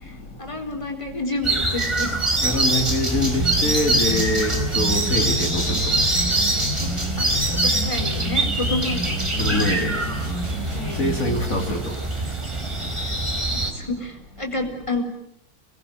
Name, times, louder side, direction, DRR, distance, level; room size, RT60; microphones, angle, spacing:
voice 1, 0.0-2.1 5.7-5.8 6.8-6.9 7.2-9.6 10.7-11.1 13.5-15.0, left 2 dB, 15° left, 4 dB, 4.5 m, -30 dB
sound 1, 1.4-13.7, right 2 dB, 15° right, 3.9 m, -24 dB
voice 2, 2.4-5.8 9.4-10.0 11.0-11.9, left 1 dB, 50° left, 2 dB, 3.4 m, -24 dB
sound 2, 3.1-11.5, equal, 60° right, 5.8 m, -30 dB
28.5 x 21.5 x 9.6 m, 0.73 s
omnidirectional pair, 1.9 m